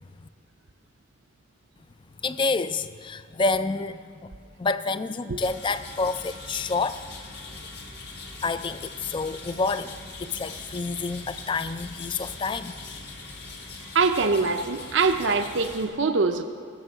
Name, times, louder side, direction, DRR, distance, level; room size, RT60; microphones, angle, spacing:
voice 1, 2.2-4.3 4.6-7.0 8.4-12.7, left 3 dB, 25° left, 13 dB, 0.3 m, -28 dB
sound 1, 5.4-15.9, left 3 dB, 55° left, 1.4 m, -41 dB
voice 2, 13.9-16.4, right 4 dB, 65° right, 7 dB, 0.6 m, -23 dB
15.5 x 6.8 x 6.6 m, 2.3 s
head